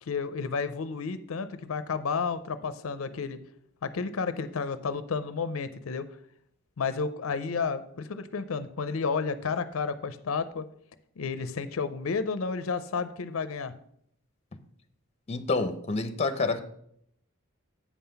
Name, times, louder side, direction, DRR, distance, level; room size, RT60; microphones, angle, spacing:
voice 1, 0.0-3.4 3.8-6.1 6.8-10.7 11.2-13.7, left 5 dB, 70° left, 12 dB, 0.5 m, -31 dB
voice 2, 15.3-16.6, left 3 dB, 30° left, 9 dB, 0.7 m, -28 dB
8.4 x 5.6 x 5.7 m, 0.69 s
head